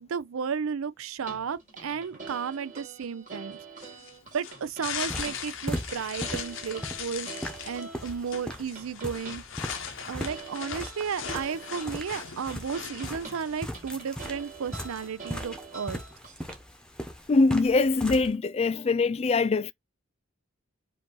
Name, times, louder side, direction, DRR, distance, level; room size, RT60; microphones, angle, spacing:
voice 1, 0.0-3.6 4.3-7.3 7.6-9.4 10.1-16.0, right 6 dB, 75° right, 0.5 m, -33 dB
sound 1, 1.2-16.6, right 4 dB, 35° right, 2.3 m, -45 dB
sound 2, 3.8-13.7, left 8 dB, 60° left, 0.8 m, -39 dB
sound 3, 4.9-18.3, equal, 5° left, 0.9 m, -39 dB
voice 2, 17.3-19.7, left 3 dB, 30° left, 0.3 m, -23 dB
5.1 x 2.7 x 3.8 m
head